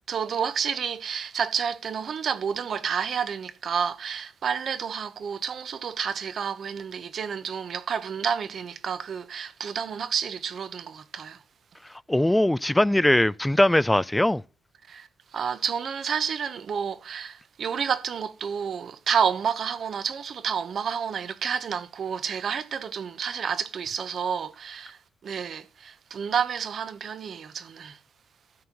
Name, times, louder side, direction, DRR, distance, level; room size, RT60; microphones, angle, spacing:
voice 1, 0.1-11.4 14.9-28.0, right 7 dB, 55° right, 1.1 m, -30 dB
voice 2, 12.1-14.4, left 1 dB, 10° left, 0.4 m, -21 dB
13.0 x 4.5 x 7.3 m
cardioid pair, 90°, 0 cm